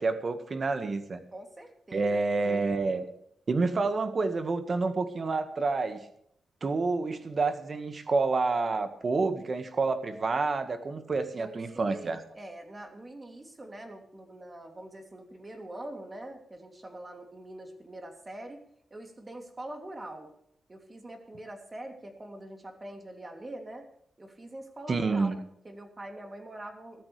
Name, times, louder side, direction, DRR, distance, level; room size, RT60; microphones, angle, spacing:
voice 1, 0.0-1.2 1.9-3.1 3.5-6.0 6.6-12.2 24.9-25.4, right 3 dB, 45° right, 9 dB, 1.7 m, -28 dB
voice 2, 1.3-2.6 11.3-20.3 20.7-23.9 24.2-27.0, right 1 dB, 30° right, 4 dB, 3.0 m, -44 dB
17.0 x 13.5 x 3.4 m, 0.71 s
cardioid pair, 75°, 0 cm